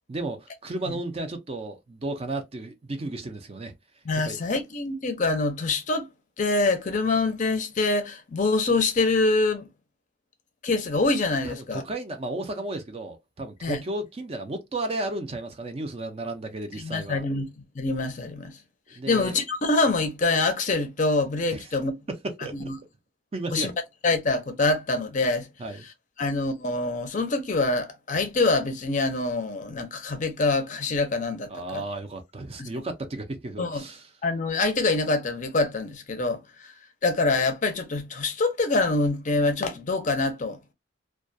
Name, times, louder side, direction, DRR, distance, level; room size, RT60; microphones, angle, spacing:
voice 1, 0.1-3.7 4.2-4.4 11.4-17.2 19.0-19.4 21.5-21.6 22.2-22.7 23.3-23.7 25.6-25.8 31.5-34.1, right 2 dB, 30° right, 0.4 m, -33 dB
voice 2, 4.1-6.1 6.4-9.7 10.6-11.8 13.6-13.8 16.8-17.5 17.8-18.6 19.1-21.9 22.5-22.7 23.5-23.7 24.0-25.5 26.2-31.8 32.6-32.7 33.6-33.8 34.2-36.7 37.0-40.6, left 3 dB, 40° left, 0.5 m, -25 dB
2.3 x 2.2 x 2.5 m
head